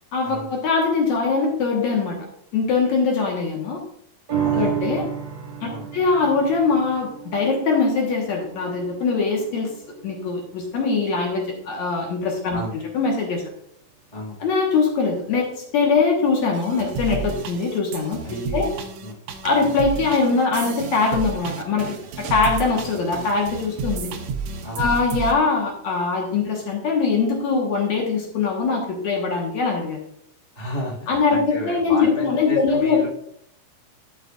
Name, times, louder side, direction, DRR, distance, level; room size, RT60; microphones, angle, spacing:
voice 1, 0.1-2.2 2.5-3.8 4.5-5.0 5.9-9.7 10.0-12.6 12.9-13.4 14.4-18.2 18.5-18.7 19.4-24.1 24.8-30.0 31.1-33.0, left 4 dB, 60° left, 0 dB, 2.3 m, -22 dB
voice 2, 4.3-5.1 5.6-5.9 12.5-12.8 14.1-14.4 18.2-18.7 19.0-19.2 24.6-24.9 30.5-33.1, equal, 20° left, -5 dB, 1.0 m, -33 dB
sound 1, 4.3-11.0 11.4-11.5, right 9 dB, 45° right, 1.8 m, -31 dB
sound 2, 16.5-25.3, right 5 dB, 85° right, 1.5 m, -32 dB
12.0 x 6.6 x 2.4 m, 0.70 s
omnidirectional pair, 4.3 m